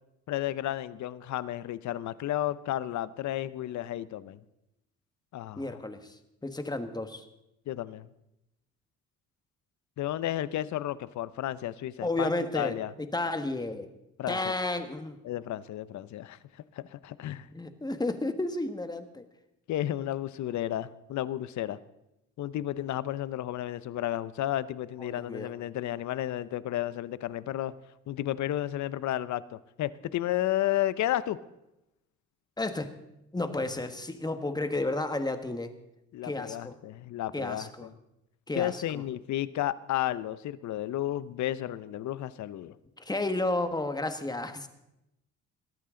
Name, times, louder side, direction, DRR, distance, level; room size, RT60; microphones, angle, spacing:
voice 1, 0.3-4.4 5.3-5.8 7.7-8.1 10.0-12.9 14.2-14.5 15.2-16.4 16.7-17.5 19.7-21.8 22.4-27.7 28.1-31.4 36.1-37.9 38.5-42.8, left 13 dB, 70° left, 17 dB, 0.7 m, -32 dB
voice 2, 5.6-7.2 12.0-13.9 14.3-15.2 17.5-19.2 25.0-25.5 32.6-32.9 33.3-35.7 36.2-36.7 37.3-37.9 38.5-39.0 43.0-44.7, left 2 dB, 15° left, 8 dB, 1.5 m, -32 dB
20.5 x 14.0 x 3.8 m, 0.88 s
cardioid pair, 90°, 30 cm